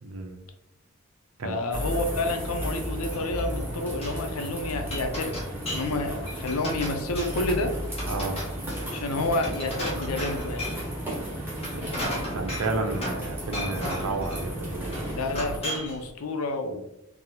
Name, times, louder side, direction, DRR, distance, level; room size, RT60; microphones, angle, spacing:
voice 1, 0.0-0.4 1.4-1.6 8.1-8.4 11.7-14.9, right 3 dB, 75° right, 5 dB, 0.5 m, -32 dB
voice 2, 1.4-5.4 5.7-7.7 8.9-10.6 15.1-16.9, left 2 dB, 80° left, 5 dB, 0.5 m, -29 dB
sound 1, 1.7-15.6, equal, 10° right, 0.8 m, -34 dB
Glass, 2.7-3.6 3.9-4.2 4.6-6.0 6.2-7.5 7.9-10.9 11.5-13.3 13.5-14.5 14.9-16.0, equal, 30° left, 0.8 m, -35 dB
3.6 x 2.0 x 2.8 m, 0.86 s
head